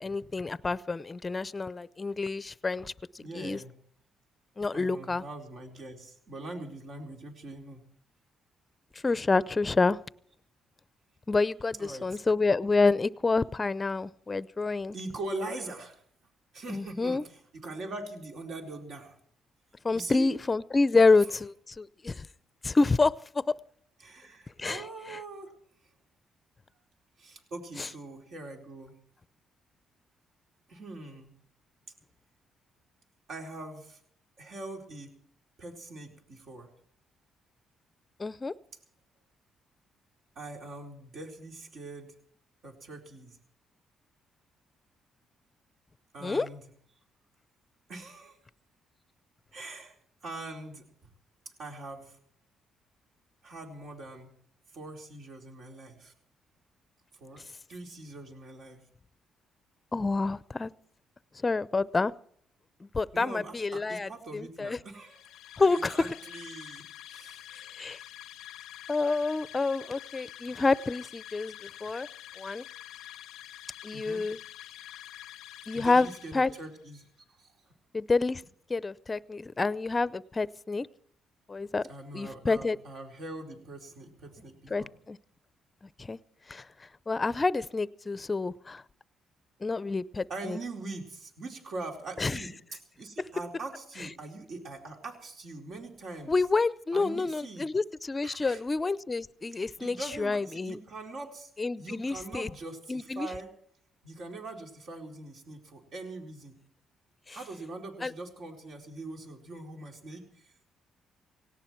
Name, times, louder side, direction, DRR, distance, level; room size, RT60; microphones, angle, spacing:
voice 1, 0.0-2.9 3.3-3.6 4.6-5.2 9.0-10.0 11.3-14.9 16.7-17.2 19.8-22.3 22.6-23.4 24.6-25.2 27.8-27.9 38.2-38.5 46.2-46.5 59.9-60.7 61.4-62.1 62.8-64.8 65.6-66.1 67.7-68.0 68.9-72.1 72.4-72.6 73.8-74.4 75.7-76.5 77.9-78.4 78.7-80.9 81.5-81.8 82.1-82.8 84.7-85.2 86.0-86.2 86.5-86.7 87.1-88.8 89.6-90.6 92.2-92.4 96.3-100.8 101.6-102.5 102.9-103.3 107.3-107.4 108.0-108.1, left 3 dB, 25° left, 18 dB, 0.6 m, -28 dB
voice 2, 3.2-3.8 4.7-7.8 11.8-12.2 14.9-16.0 16.5-19.2 19.9-20.3 20.9-21.0 24.0-25.6 27.2-29.0 30.7-31.3 33.3-34.0 34.4-35.2 35.6-36.7 40.4-42.1 42.6-43.4 46.1-46.6 47.9-48.4 49.5-50.0 50.2-51.1 51.6-52.2 53.4-54.3 54.7-56.1 57.2-58.8 63.1-65.2 65.7-66.8 67.1-67.4 73.9-74.3 75.7-77.1 77.4-77.5 81.9-84.9 90.3-96.4 96.9-97.7 98.2-98.6 99.8-101.5 101.8-103.5 104.0-106.6 107.3-110.7, right 2 dB, 65° right, 2 dB, 4.3 m, -42 dB
sound 1, 65.0-76.8, left 13 dB, 90° left, 0.5 m, -47 dB
18.0 x 17.5 x 4.5 m, 0.64 s
cardioid pair, 90°, 0 cm